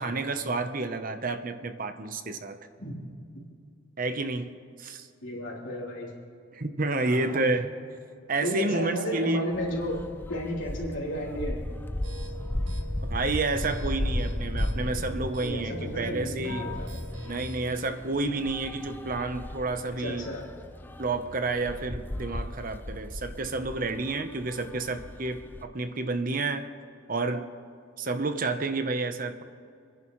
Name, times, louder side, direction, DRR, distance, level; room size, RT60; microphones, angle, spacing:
voice 1, 0.0-2.6 4.0-4.5 4.8-5.1 6.5-7.7 8.3-9.4 13.1-16.7 17.2-20.3 21.0-26.6 27.1-27.5 28.0-29.4, right 3 dB, 45° right, 9 dB, 0.8 m, -30 dB
voice 2, 5.2-6.1 7.1-7.5 8.4-11.6 15.4-16.9 19.9-20.4, equal, 80° left, -4 dB, 3.4 m, -33 dB
sound 1, 9.5-25.6, left 1 dB, 10° left, 0.4 m, -35 dB
sound 2, 12.0-17.6, left 1 dB, 80° right, 1.9 m, -45 dB
29.0 x 10.5 x 3.1 m, 2.4 s
head